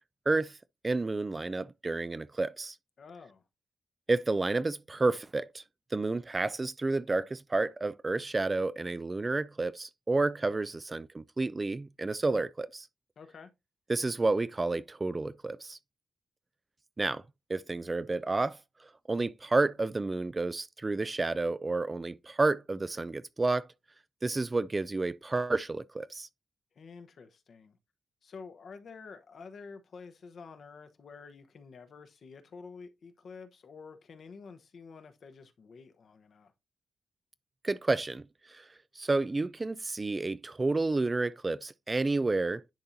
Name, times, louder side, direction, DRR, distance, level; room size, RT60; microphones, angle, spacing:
voice 1, 0.3-0.6 0.8-2.8 4.1-5.6 5.9-12.9 13.9-15.8 17.0-17.2 17.5-18.6 19.1-23.7 24.2-26.3 37.6-38.7 39.0-42.6, right 3 dB, 25° right, 0.3 m, -30 dB
voice 2, 3.0-3.4 13.2-13.5 26.7-27.8 28.2-36.5, left 5 dB, 60° left, 0.9 m, -49 dB
10.5 x 4.3 x 2.6 m
cardioid pair, 95°, 0 cm